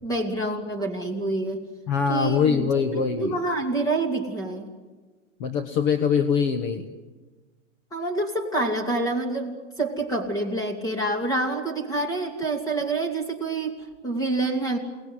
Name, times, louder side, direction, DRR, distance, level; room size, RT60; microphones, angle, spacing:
voice 1, 0.0-1.7 2.1-4.7 7.9-14.8, right 2 dB, 10° left, 4 dB, 2.7 m, -27 dB
voice 2, 1.9-3.4 5.4-6.9, left 6 dB, 35° left, 8 dB, 1.2 m, -23 dB
29.0 x 19.5 x 9.6 m, 1.3 s
supercardioid pair, 175°, 37 cm